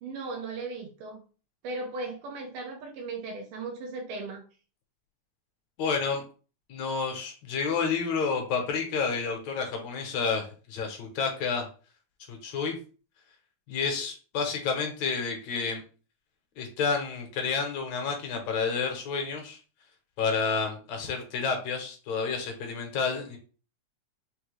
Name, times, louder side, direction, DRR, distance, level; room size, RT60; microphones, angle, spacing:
voice 1, 0.0-1.2 1.6-4.4, right 3 dB, 90° right, 1 dB, 2.5 m, -37 dB
voice 2, 5.8-6.2 6.7-11.7 12.3-12.8 13.7-15.8 16.6-19.6 20.2-23.4, left 5 dB, 70° left, 3 dB, 1.9 m, -30 dB
5.9 x 2.2 x 3.2 m, 0.37 s
omnidirectional pair, 3.8 m